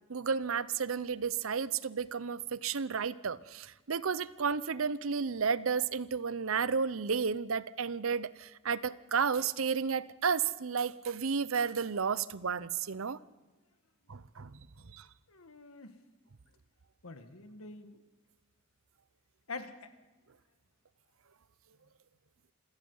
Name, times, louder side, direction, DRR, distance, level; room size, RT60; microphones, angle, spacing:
voice 1, 0.1-13.2 14.1-14.5 14.9-15.0, right 6 dB, 75° right, 17 dB, 0.7 m, -32 dB
voice 2, 15.3-16.0 17.0-18.0 19.5-19.9, left 3 dB, 90° left, 8 dB, 1.7 m, -45 dB
27.0 x 17.5 x 5.6 m, 1.1 s
head